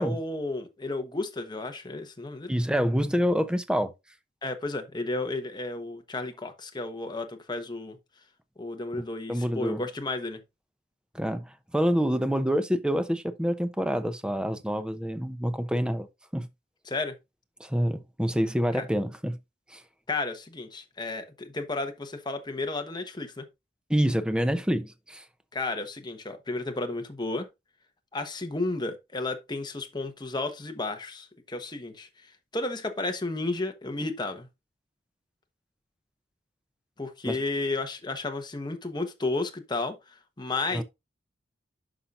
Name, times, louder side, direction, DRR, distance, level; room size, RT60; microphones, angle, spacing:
voice 1, 0.0-2.6 4.4-8.0 8.6-10.4 16.8-17.2 18.7-18.8 20.1-23.5 25.5-27.5 28.1-34.5 37.0-40.8, left 2 dB, 25° left, 1.1 m, -33 dB
voice 2, 2.5-3.9 9.3-9.8 11.1-16.1 16.3-16.5 17.6-19.4 19.7-19.8 23.9-25.2 37.3-37.4 40.7-40.8, equal, 5° right, 0.6 m, -27 dB
10.0 x 5.7 x 2.5 m
head